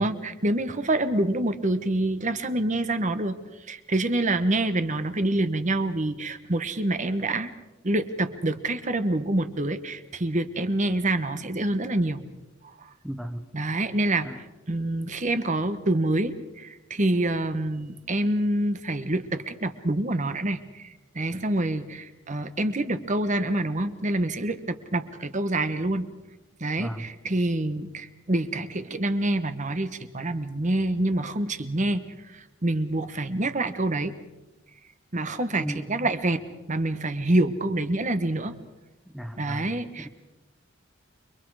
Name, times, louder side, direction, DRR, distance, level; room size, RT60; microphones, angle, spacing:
voice 1, 0.0-3.4 3.7-7.5 7.8-12.2 12.6-12.9 13.5-26.1 26.6-34.1 35.1-36.4 36.7-38.5 39.4-40.1, right 1 dB, 40° right, 10 dB, 1.2 m, -27 dB
voice 2, 13.0-13.5 14.2-14.4 26.8-27.1 35.6-36.1 39.1-39.7 40.0-40.1, equal, ahead, 7 dB, 1.0 m, -35 dB
29.5 x 23.0 x 4.9 m, 1.0 s
head